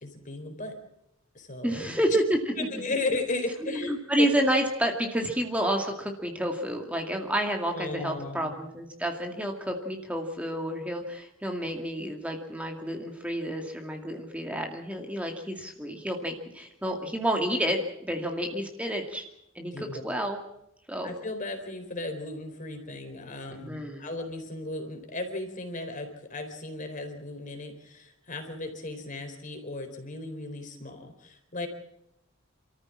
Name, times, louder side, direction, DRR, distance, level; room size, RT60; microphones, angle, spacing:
voice 1, 0.0-0.8 1.3-1.9 2.6-4.3 7.7-8.6 19.7-20.0 21.0-31.7, left 2 dB, 40° left, 5 dB, 4.2 m, -35 dB
voice 2, 1.6-2.4 3.9-19.2 19.6-20.4 20.9-21.1 23.5-24.1, right 1 dB, 5° right, 2 dB, 2.3 m, -29 dB
28.5 x 14.5 x 7.4 m, 0.80 s
head